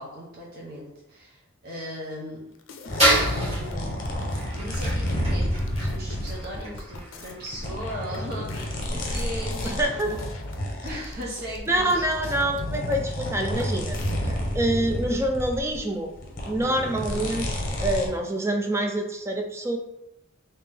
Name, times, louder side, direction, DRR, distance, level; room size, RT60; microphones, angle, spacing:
voice 1, 0.0-2.4 3.1-4.0 4.5-10.3 10.8-12.1, equal, 50° right, -4 dB, 0.8 m, -38 dB
sound 1, 2.5-3.7 4.1-4.2 4.4-13.3 13.6-14.1, left 3 dB, 75° left, 0.5 m, -45 dB
sound 2, 2.9-7.0 7.5-15.9 16.1-18.1, equal, 45° left, 0.7 m, -30 dB
sound 3, 2.9-9.6, right 1 dB, 30° right, 1.3 m, -29 dB
voice 2, 9.8-10.1 11.7-14.0 14.2-16.1 16.5-19.8, right 1 dB, 15° right, 3 dB, 0.4 m, -26 dB
3.5 x 2.8 x 3.4 m, 0.87 s
head